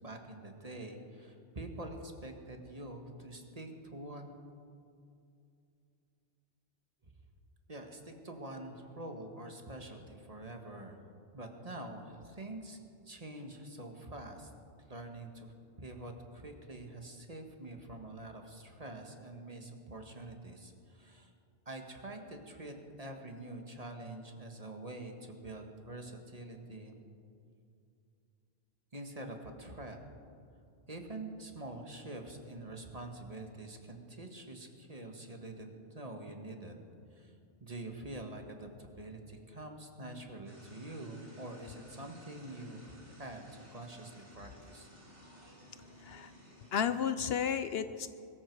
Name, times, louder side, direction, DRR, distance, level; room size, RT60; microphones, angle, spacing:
voice 1, 0.0-4.3 7.0-7.1 7.7-11.0 11.3-12.8 13.1-14.5 14.9-21.3 21.7-27.0 28.9-30.0 30.9-36.8 37.1-37.4 37.6-44.9, right 2 dB, 35° right, 4 dB, 1.6 m, -46 dB
sound 1, 40.5-46.8, equal, 85° right, 3.7 m, -56 dB
voice 2, 46.7-48.1, left 8 dB, 65° left, 12 dB, 0.8 m, -32 dB
22.5 x 14.0 x 4.7 m, 2.5 s
omnidirectional pair, 1.2 m